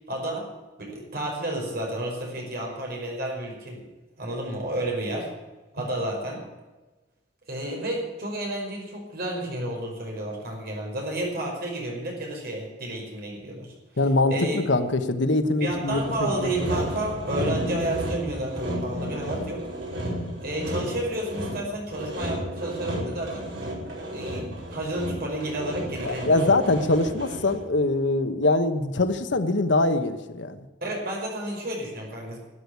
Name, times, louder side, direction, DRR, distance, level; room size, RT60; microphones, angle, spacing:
voice 1, 0.1-0.5 0.8-3.9 4.2-5.3 5.7-6.4 7.5-13.7 14.3-14.6 15.6-19.7 20.4-23.4 24.1-26.6 30.8-32.4, right 1 dB, 55° right, 0 dB, 5.2 m, -31 dB
voice 2, 14.0-16.5 16.8-16.9 26.0-30.6, left 2 dB, 80° left, 9 dB, 1.2 m, -23 dB
Sawing, 15.7-27.7, equal, 80° right, 5.0 m, -33 dB
12.5 x 8.6 x 9.6 m, 1.2 s
head